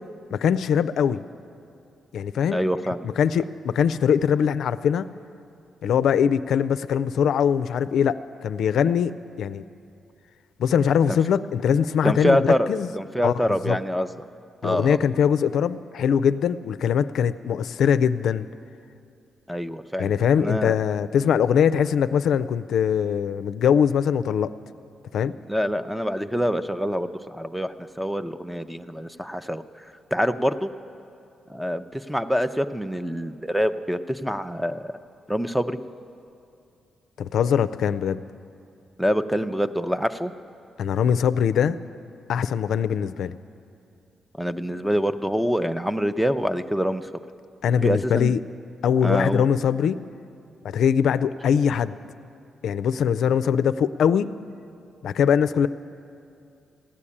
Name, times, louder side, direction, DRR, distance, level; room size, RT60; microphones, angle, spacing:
voice 1, 0.3-1.2 2.1-2.6 3.0-5.1 5.8-8.2 8.4-9.6 10.6-12.9 13.2-13.3 13.7-13.8 14.6-18.5 20.0-24.5 25.1-25.3 37.2-38.2 40.8-41.8 42.3-43.3 47.6-48.4 48.8-50.0 50.6-51.9 52.6-54.3 55.0-55.7, left 8 dB, 75° left, 13 dB, 0.4 m, -22 dB
voice 2, 2.5-3.1 11.1-11.2 12.0-14.1 14.6-15.0 19.5-20.8 25.5-29.6 30.1-30.7 31.5-34.9 35.3-35.8 39.0-40.3 44.4-47.0 47.8-48.3 49.0-49.5, equal, ahead, 12 dB, 0.5 m, -25 dB
15.5 x 9.8 x 8.5 m, 2.5 s
cardioid pair, 100°, 0 cm